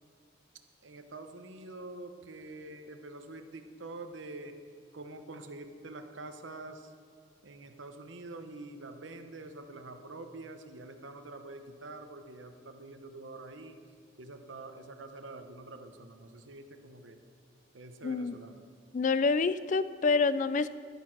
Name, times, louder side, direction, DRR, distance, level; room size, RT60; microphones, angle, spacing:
voice 1, 0.8-4.6 4.9-6.9 7.4-13.8 14.2-17.2 17.7-18.6, right 2 dB, 85° right, 7 dB, 1.0 m, -46 dB
voice 2, 18.0-18.4 18.9-20.7, left 4 dB, 40° left, 15 dB, 0.4 m, -27 dB
12.0 x 9.3 x 6.0 m, 2.2 s
head